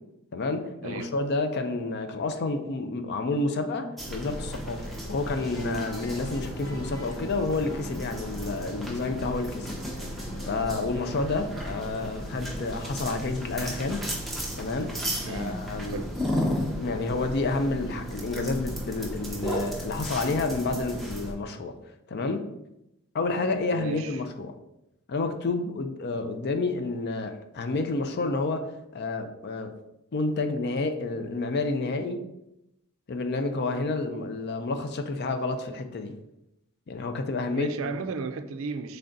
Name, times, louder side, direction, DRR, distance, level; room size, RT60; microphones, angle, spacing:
voice 1, 0.3-9.7 10.5-14.0 14.6-14.9 15.3-16.0 16.5-21.7 22.1-22.4 23.1-24.5 25.1-29.7 30.1-32.2 33.1-36.1 36.9-37.9, left 3 dB, 50° left, 0.4 m, -29 dB
voice 2, 0.8-1.1 15.2-15.6 15.9-16.2 23.7-24.2 37.5-39.0, right 4 dB, 65° right, 0.4 m, -35 dB
sound 1, 4.0-21.3, equal, ahead, 0.7 m, -34 dB
sound 2, 5.5-11.6, left 1 dB, 70° left, 1.2 m, -46 dB
3.9 x 3.4 x 3.8 m
head